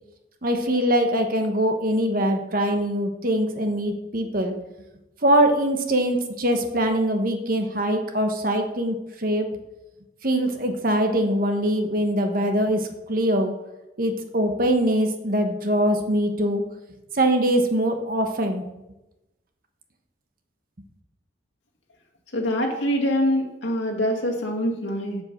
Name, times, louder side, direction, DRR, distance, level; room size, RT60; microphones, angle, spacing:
voice 1, 0.4-4.5 5.2-9.5 10.2-13.5 14.0-16.6 17.1-18.6, right 1 dB, 45° right, 5 dB, 1.1 m, -23 dB
voice 2, 22.3-25.2, equal, 80° left, 1 dB, 2.0 m, -24 dB
7.8 x 7.5 x 6.0 m, 0.98 s
head